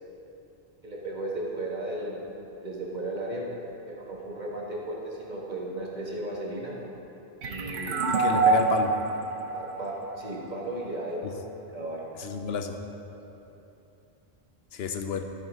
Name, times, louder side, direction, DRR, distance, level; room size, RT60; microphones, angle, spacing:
voice 1, 0.8-2.2 2.6-3.5 3.9-6.8 7.4-8.4 9.5-11.4 11.7-12.1 13.1-13.2, right 1 dB, 45° right, -4 dB, 1.8 m, -35 dB
sound 1, 7.4-10.8, right 4 dB, 85° right, 1.1 m, -26 dB
voice 2, 8.0-8.9 11.2-11.4 12.2-12.8 14.7-15.2, left 4 dB, 70° left, 6 dB, 1.0 m, -31 dB
13.5 x 8.3 x 3.7 m, 2.9 s
omnidirectional pair, 1.1 m